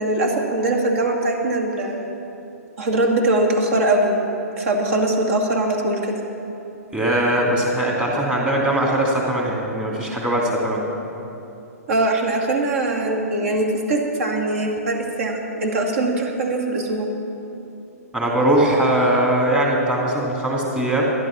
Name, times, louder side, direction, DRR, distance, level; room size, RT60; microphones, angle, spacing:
voice 1, 0.0-2.2 2.8-4.1 4.6-6.2 11.9-17.1, right 2 dB, 55° right, 1 dB, 2.2 m, -21 dB
voice 2, 6.9-10.9 18.1-21.0, right 1 dB, 10° right, -3 dB, 2.7 m, -20 dB
12.0 x 11.0 x 6.0 m, 2.9 s
figure-of-eight pair, 125°, 9 cm